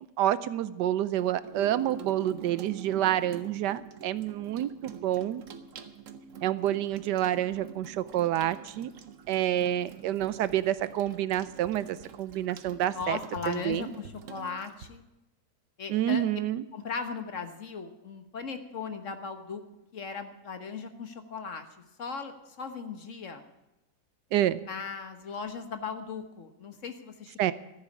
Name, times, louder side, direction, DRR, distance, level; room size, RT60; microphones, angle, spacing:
voice 1, 0.2-5.4 6.4-8.9 9.3-13.2 13.5-13.9 15.9-16.6 24.3-24.6 27.4-27.5, right 12 dB, 80° right, 16 dB, 1.2 m, -28 dB
Water tap faucet / Sink (filling or washing), 1.1-14.9, right 6 dB, 55° right, 1.1 m, -46 dB
voice 2, 12.9-15.0 15.8-16.2 16.7-19.6 19.9-21.6 22.0-23.4 24.7-27.5, left 5 dB, 50° left, 8 dB, 1.3 m, -37 dB
14.0 x 7.3 x 9.8 m, 0.95 s
omnidirectional pair, 1.8 m